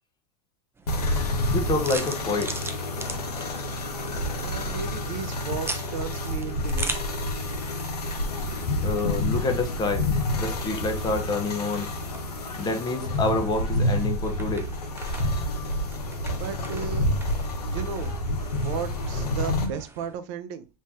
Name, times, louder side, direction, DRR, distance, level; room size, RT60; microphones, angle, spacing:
sound 1, 0.8-20.2, right 3 dB, 10° right, 0.5 m, -42 dB
sound 2, 0.9-19.7, left 1 dB, 90° left, 0.7 m, -28 dB
voice 1, 1.5-2.5 8.8-10.1 10.4-11.9 12.6-14.7, left 3 dB, 20° left, 0.8 m, -27 dB
voice 2, 4.3-7.0 16.3-17.1 17.7-18.1 18.6-20.7, right 7 dB, 55° right, 0.5 m, -35 dB
3.3 x 2.6 x 3.2 m
hypercardioid pair, 95°, 20 cm